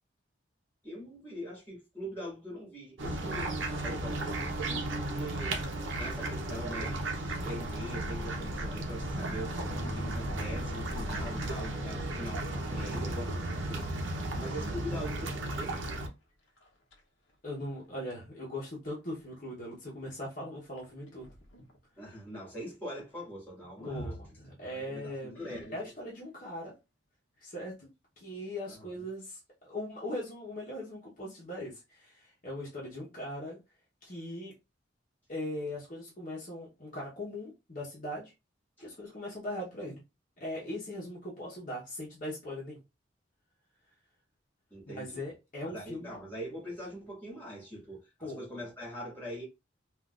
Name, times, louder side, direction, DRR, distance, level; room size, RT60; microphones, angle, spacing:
voice 1, 0.8-5.6 6.0-13.9 14.3-15.8 22.0-24.2 24.7-25.8 28.7-28.9 38.8-38.9 44.7-45.2 45.7-49.4, equal, 10° left, 1.8 m, -43 dB
sound 1, 3.0-16.1, right 1 dB, 80° right, 0.8 m, -35 dB
sound 2, 9.3-12.6 13.2-13.4 13.8-14.2 14.5-14.6 15.3-15.4 15.9-16.0 16.6-17.0 17.8-17.9 20.8-21.8 23.8-24.9 25.4-26.1, equal, 85° left, 0.9 m, -44 dB
voice 2, 17.4-21.3 23.8-25.4 25.7-26.7 27.4-33.6 34.0-34.5 35.3-38.3 38.8-40.0 40.4-42.8 44.9-46.2 48.2-48.4, left 1 dB, 45° left, 1.0 m, -40 dB
3.7 x 2.5 x 2.4 m
head